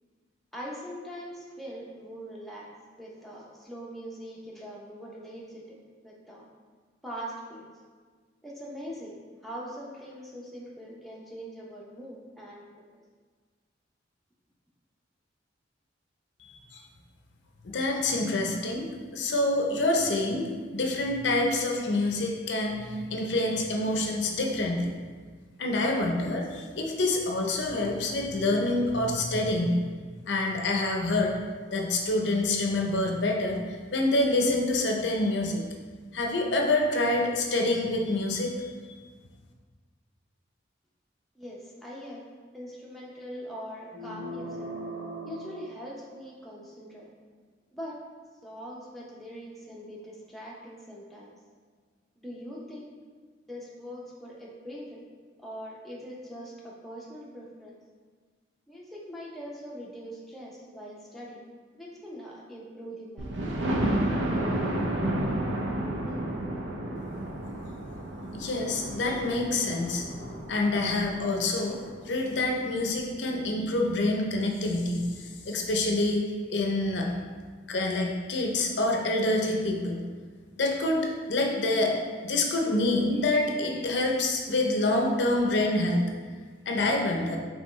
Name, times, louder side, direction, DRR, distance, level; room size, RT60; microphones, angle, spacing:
voice 1, 0.5-2.7 3.0-5.8 6.0-6.4 7.0-7.6 8.4-9.2 9.4-12.7 41.4-42.2 42.5-44.7 45.2-47.1 47.7-48.0 48.4-51.3 52.2-52.9 53.5-55.0 55.4-57.8 58.7-61.4 61.7-63.6, equal, ahead, -5 dB, 0.6 m, -42 dB
voice 2, 16.4-16.8 17.6-24.9 25.6-29.8 30.3-31.3 31.7-35.6 36.1-38.8 68.3-70.0 70.5-71.8 72.1-76.2 76.5-77.1 77.7-80.0 80.6-81.9 82.2-86.1 86.7-87.4, left 2 dB, 70° left, 1 dB, 0.6 m, -27 dB
sound 1, 43.9-46.6, right 1 dB, 55° right, 1.2 m, -40 dB
Thunder, 63.2-72.9 73.5-73.6 74.0-74.1 74.3-74.4, right 1 dB, 80° right, 0.5 m, -32 dB
5.4 x 3.1 x 3.1 m, 1.5 s
head